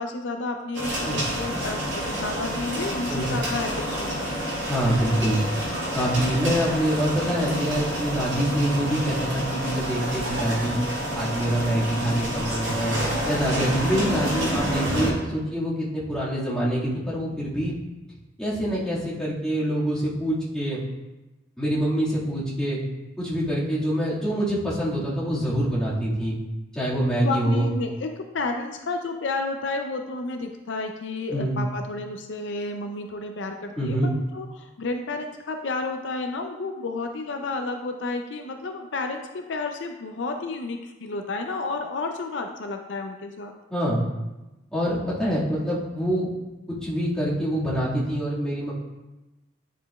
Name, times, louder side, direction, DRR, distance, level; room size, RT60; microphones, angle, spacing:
voice 1, 0.0-4.3 27.2-28.1 28.3-43.5, left 3 dB, 70° left, 4 dB, 0.5 m, -31 dB
sound 1, 0.7-15.1, equal, 75° right, 2.1 m, -28 dB
voice 2, 4.7-5.4 5.9-10.8 11.1-13.0 13.3-17.7 18.4-20.8 21.6-22.8 23.2-26.4 26.7-27.7 31.3-31.6 33.8-34.1 43.7-44.0 44.7-46.3 46.7-48.7, equal, 5° left, -9 dB, 1.8 m, -25 dB
9.5 x 5.0 x 2.3 m, 1.0 s
head